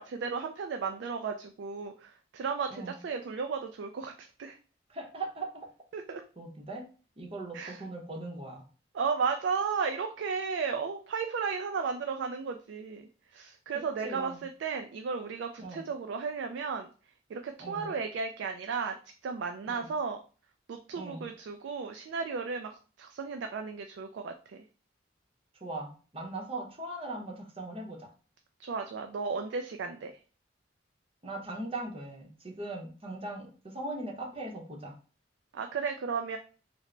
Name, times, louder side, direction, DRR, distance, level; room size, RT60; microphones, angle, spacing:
voice 1, 0.0-4.6 5.9-6.2 7.5-7.8 8.9-16.9 17.3-19.0 19.2-20.2 20.7-22.7 23.0-24.6 28.6-30.2 35.5-36.4, right 5 dB, 75° right, 5 dB, 0.3 m, -34 dB
voice 2, 4.9-5.7 6.4-6.9 7.2-8.7 14.0-14.4 15.6-15.8 17.6-17.9 19.7-19.9 20.9-21.3 25.6-28.1 31.2-34.9, right 2 dB, 30° right, 1 dB, 0.7 m, -39 dB
3.2 x 2.1 x 3.7 m, 0.38 s
head